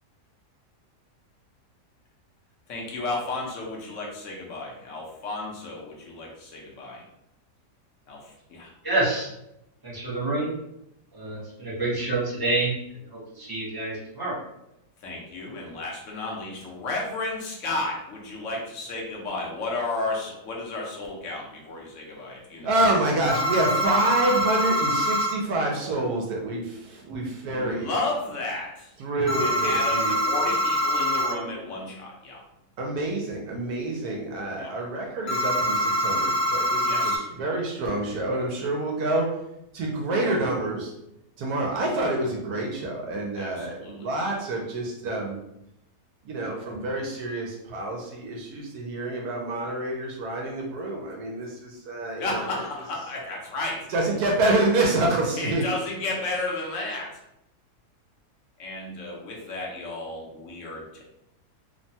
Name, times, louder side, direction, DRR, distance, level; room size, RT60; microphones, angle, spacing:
voice 1, 2.7-7.0 8.1-8.7 15.0-22.7 27.5-28.9 29.4-32.4 34.6-34.7 36.8-37.2 43.3-44.1 52.2-53.9 55.4-57.2 58.6-61.0, left 2 dB, 60° left, -2 dB, 0.9 m, -33 dB
voice 2, 8.8-9.3 9.8-10.5 11.1-12.7 13.1-14.4, right 2 dB, 25° right, -7 dB, 0.5 m, -27 dB
voice 3, 22.6-27.9 29.0-30.2 32.8-37.1 37.4-39.3 39.7-40.9 41.4-45.4 46.2-52.5 53.9-55.6, right 2 dB, 75° right, -1 dB, 1.1 m, -27 dB
sound 1, 23.3-25.3 29.3-31.3 35.3-37.2, equal, 85° left, 0.4 m, -24 dB
3.0 x 2.1 x 2.7 m, 0.84 s
omnidirectional pair, 1.7 m